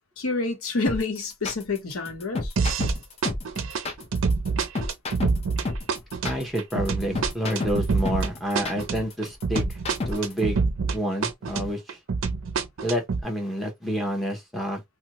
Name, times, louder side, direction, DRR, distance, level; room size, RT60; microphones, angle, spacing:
voice 1, 0.2-2.5, left 3 dB, 85° left, 0.9 m, -28 dB
sound 1, 0.9-10.4, left 2 dB, 30° left, 0.5 m, -31 dB
sound 2, 2.6-3.0 3.2-11.0 11.2-13.2, right 4 dB, 65° right, 0.5 m, -26 dB
voice 2, 6.2-9.8 10.1-10.6 10.9-12.0 12.8-14.8, equal, ahead, 0.8 m, -28 dB
2.7 x 2.2 x 2.9 m
head